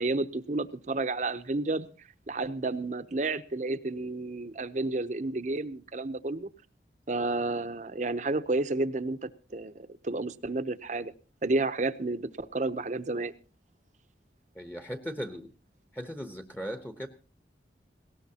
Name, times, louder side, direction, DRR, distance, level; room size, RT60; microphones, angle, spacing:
voice 1, 0.0-1.9 2.3-6.5 7.1-11.1 11.4-13.3, right 2 dB, 45° right, 0.7 m, -31 dB
voice 2, 14.5-15.5 15.9-17.1, equal, 10° left, 0.9 m, -38 dB
19.5 x 18.0 x 2.8 m
head